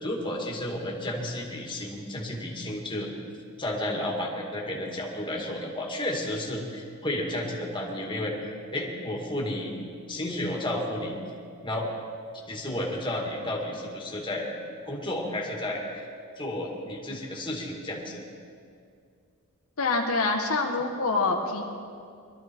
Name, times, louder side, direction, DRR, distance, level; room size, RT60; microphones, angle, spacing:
voice 1, 0.0-3.1 3.6-8.4 8.7-9.7 10.1-11.2 11.6-11.9 12.5-14.5 14.9-16.1 16.4-18.2, left 1 dB, 20° left, -1 dB, 2.2 m, -32 dB
voice 2, 19.8-21.6, left 3 dB, 75° left, 1 dB, 1.4 m, -26 dB
22.0 x 13.0 x 4.6 m, 2.4 s
head